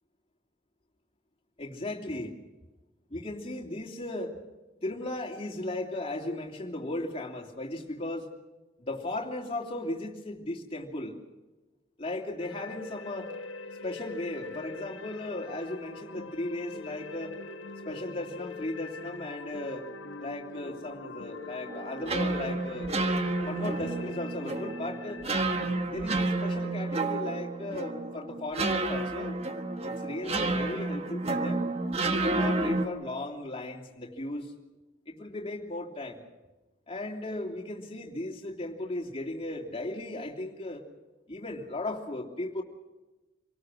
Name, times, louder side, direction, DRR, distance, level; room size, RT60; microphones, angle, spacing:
voice 1, 1.6-2.4 3.1-4.4 4.8-8.3 8.8-11.2 12.0-13.3 13.8-17.4 17.8-19.8 20.2-22.9 23.4-25.2 25.9-29.4 29.8-31.7 32.3-34.5 35.1-36.2 36.9-40.8 41.3-42.6, left 1 dB, 30° left, 0 dB, 3.1 m, -36 dB
sound 1, 12.4-25.9, left 3 dB, 80° left, 1.5 m, -43 dB
sound 2, 21.7-32.9, right 2 dB, 30° right, 1.5 m, -30 dB
27.5 x 18.5 x 6.4 m, 1.1 s
head